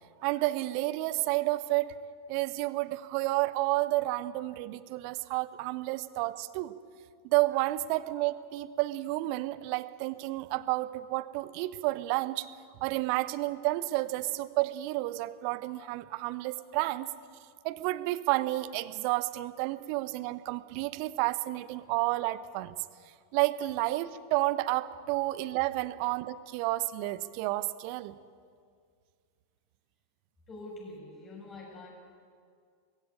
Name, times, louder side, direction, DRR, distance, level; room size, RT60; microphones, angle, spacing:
voice 1, 0.2-1.9 2.3-6.7 7.2-12.5 12.8-17.1 17.6-22.7 23.3-28.2, right 18 dB, 45° right, 16 dB, 0.8 m, -30 dB
voice 2, 30.5-31.9, left 2 dB, 25° left, -1 dB, 7.8 m, -45 dB
21.0 x 16.0 x 8.9 m, 2.1 s
figure-of-eight pair, 90°, 0 cm